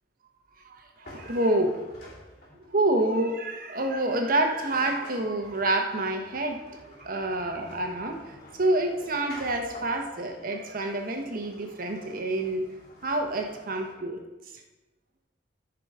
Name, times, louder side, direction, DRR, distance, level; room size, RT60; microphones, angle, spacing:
voice 1, 0.6-1.8 2.7-12.7 13.0-14.2, right 1 dB, 55° right, 3 dB, 1.1 m, -28 dB
sound 1, 1.0-2.8 4.2-4.3 4.4-13.9, left 1 dB, 55° left, 3.3 m, -49 dB
13.5 x 5.0 x 4.9 m, 1.1 s
head